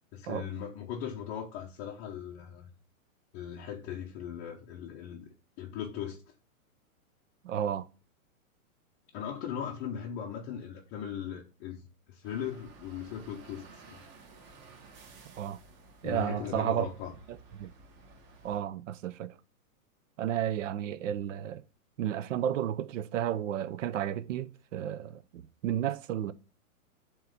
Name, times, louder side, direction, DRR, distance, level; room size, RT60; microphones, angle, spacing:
voice 1, 0.1-2.7 3.3-5.3 5.6-6.2 9.1-14.0 16.0-17.1, left 8 dB, 20° left, 0.6 m, -39 dB
voice 2, 7.4-7.9 15.4-15.6 16.0-16.9 17.3-17.7 18.4-19.3 20.2-21.6 22.0-26.3, right 10 dB, 60° right, 0.6 m, -32 dB
sound 1, 12.2-18.6, right 4 dB, 25° right, 1.2 m, -54 dB
7.4 x 3.1 x 5.0 m
hypercardioid pair, 145°, 43 cm